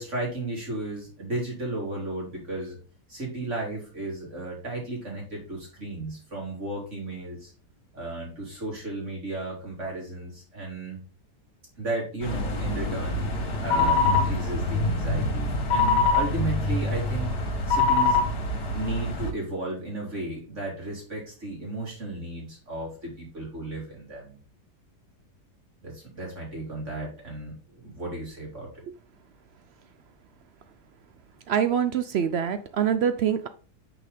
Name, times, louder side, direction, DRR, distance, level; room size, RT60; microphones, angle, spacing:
voice 1, 0.0-2.8 3.1-7.5 7.9-11.0 11.8-18.2 18.7-24.4 25.8-28.8, right 2 dB, 45° right, -3 dB, 3.5 m, -34 dB
sound 1, 12.2-19.3, left 3 dB, 75° left, 2.0 m, -25 dB
voice 2, 31.5-33.5, right 8 dB, 80° right, 10 dB, 0.5 m, -25 dB
6.1 x 5.7 x 3.5 m, 0.37 s
omnidirectional pair, 1.7 m